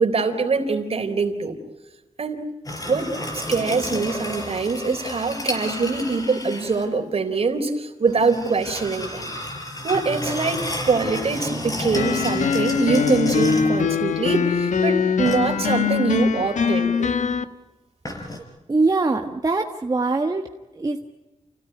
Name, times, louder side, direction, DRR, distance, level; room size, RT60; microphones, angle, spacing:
voice 1, 0.0-1.6 2.2-2.4 2.9-9.3 9.8-10.6 10.9-17.1, right 4 dB, 55° right, 5 dB, 3.9 m, -23 dB
sound 1, 2.6-6.9 8.1-13.9 15.2-15.8 18.0-18.4, left 1 dB, 30° left, 5.5 m, -32 dB
sound 2, 11.9-17.4, left 6 dB, 80° left, 1.2 m, -22 dB
voice 2, 18.7-20.5 20.7-21.0, right 3 dB, 30° right, 3 dB, 1.5 m, -22 dB
29.5 x 17.0 x 9.4 m, 1.1 s
wide cardioid pair, 120°, 12 cm